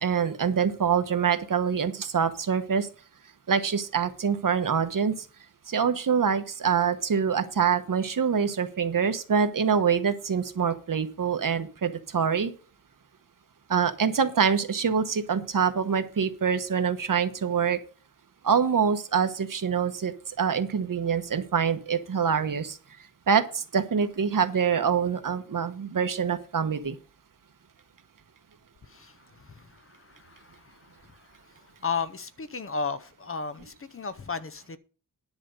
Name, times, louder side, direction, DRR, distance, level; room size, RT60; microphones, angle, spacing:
voice 1, 0.0-2.9 3.5-5.3 5.7-12.5 13.7-17.8 18.4-22.8 23.3-27.0, right 6 dB, 65° right, 1.1 m, -25 dB
voice 2, 29.4-30.7 31.8-34.8, left 5 dB, 40° left, 0.7 m, -34 dB
10.5 x 5.1 x 6.8 m
wide cardioid pair, 125°, 34 cm